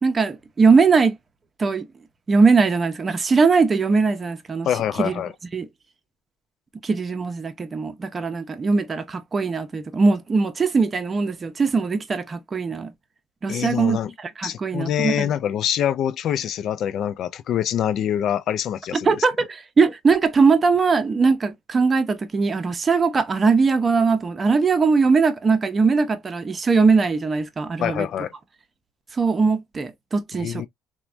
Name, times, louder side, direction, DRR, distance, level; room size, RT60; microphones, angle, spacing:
voice 1, 0.0-1.2 1.6-1.8 2.3-4.7 5.0-5.1 5.5-5.7 6.8-12.9 13.4-14.0 14.4-15.3 19.0-28.1 29.2-30.7, right 4 dB, 30° right, 0.6 m, -20 dB
voice 2, 4.7-5.3 13.5-14.1 14.4-19.3 27.8-28.3 30.4-30.7, left 10 dB, 60° left, 0.4 m, -25 dB
3.2 x 2.2 x 2.4 m
cardioid pair, 110°, 0 cm